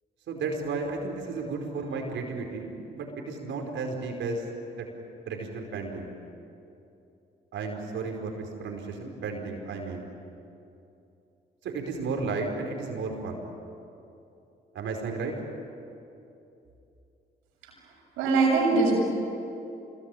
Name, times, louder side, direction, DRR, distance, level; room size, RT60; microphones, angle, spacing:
voice 1, 0.3-4.4 4.8-4.9 5.3-6.1 7.5-10.1 11.6-13.4 14.7-15.3, right 4 dB, 75° right, 2 dB, 5.1 m, -33 dB
voice 2, 18.2-18.9, right 3 dB, 90° right, -1 dB, 7.4 m, -21 dB
26.0 x 22.5 x 9.3 m, 2.7 s
supercardioid pair, 55°, 20 cm